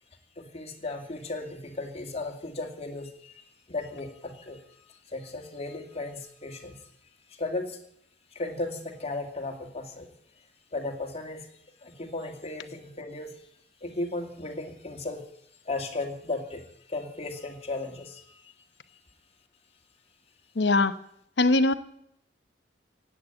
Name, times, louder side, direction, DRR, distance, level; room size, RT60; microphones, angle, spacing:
voice 1, 0.4-3.4 3.7-4.6 4.9-6.9 7.3-7.8 8.3-10.1 10.7-11.5 11.8-13.4 13.8-15.3 15.6-18.5, left 2 dB, 35° left, 3 dB, 2.3 m, -35 dB
voice 2, 20.6-20.9 21.4-21.7, left 2 dB, 70° left, 11 dB, 0.9 m, -21 dB
16.5 x 8.6 x 9.3 m, 0.72 s
head